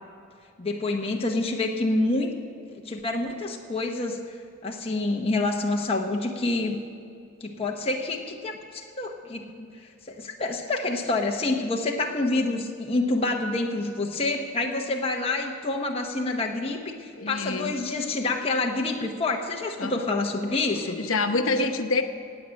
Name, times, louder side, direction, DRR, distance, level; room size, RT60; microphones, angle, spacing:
voice 1, 0.6-2.3 2.7-4.4 4.6-6.8 7.4-21.0 21.6-21.7, left 2 dB, 30° left, 1 dB, 1.0 m, -27 dB
voice 2, 17.2-17.7 19.8-20.1 20.8-22.0, left 3 dB, 75° left, 7 dB, 1.0 m, -27 dB
16.5 x 9.0 x 6.4 m, 2.3 s
head